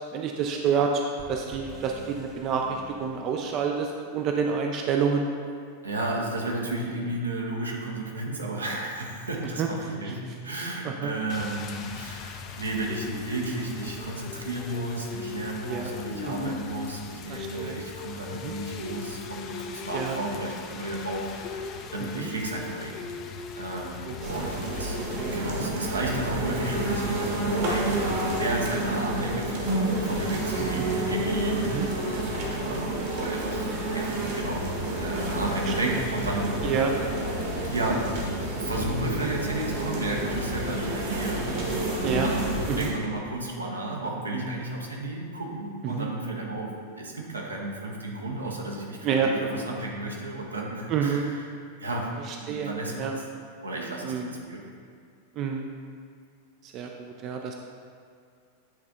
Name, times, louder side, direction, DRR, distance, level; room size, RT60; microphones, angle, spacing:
voice 1, 0.1-5.3 9.6-9.7 10.1-10.2 10.8-11.1 15.6-15.9 16.3-16.5 17.3-17.8 18.4-18.5 19.9-20.2 22.1-22.3 24.1-24.5 25.0-25.7 30.8-30.9 31.6-31.9 35.7-36.0 36.6-36.9 42.0-42.3 42.7-42.9 45.8-46.1 49.0-49.3 50.9-51.2 52.3-53.1 54.0-54.3 55.4-55.6 56.6-57.6, right 6 dB, 35° right, 2 dB, 0.4 m, -28 dB
sound 1, 1.2-4.0, left 1 dB, 10° right, 0.9 m, -47 dB
voice 2, 5.8-23.1 23.6-25.0 25.3-32.0 32.4-34.7 35.0-36.6 37.6-41.5 42.2-51.4 51.8-52.1 52.4-53.1 53.6-54.6, right 2 dB, 75° right, -1 dB, 0.9 m, -33 dB
Rain, 11.3-25.4, left 5 dB, 35° left, 0.4 m, -39 dB
sound 2, 24.2-42.9, right 1 dB, 55° right, 1.4 m, -29 dB
8.7 x 3.4 x 3.7 m, 2.3 s
figure-of-eight pair, 90°, 0 cm